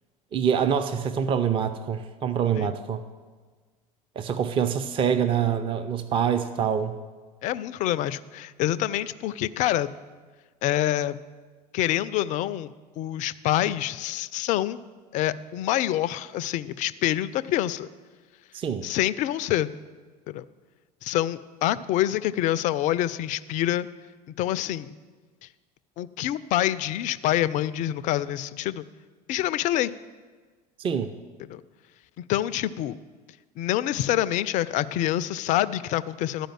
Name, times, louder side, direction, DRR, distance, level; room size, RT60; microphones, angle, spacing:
voice 1, 0.3-3.0 4.2-7.0 18.5-18.9 30.8-31.1, right 7 dB, 25° right, 10 dB, 0.5 m, -25 dB
voice 2, 7.4-9.9 10.6-11.2 11.7-12.7 13.0-14.8 15.1-17.9 18.8-19.7 20.3-20.4 21.0-23.9 24.4-24.9 26.0-28.9 29.3-29.9 31.5-31.6 32.3-33.0 33.6-36.5, left 13 dB, 35° left, 16 dB, 0.4 m, -26 dB
12.0 x 5.1 x 7.4 m, 1.4 s
figure-of-eight pair, 70°, 21 cm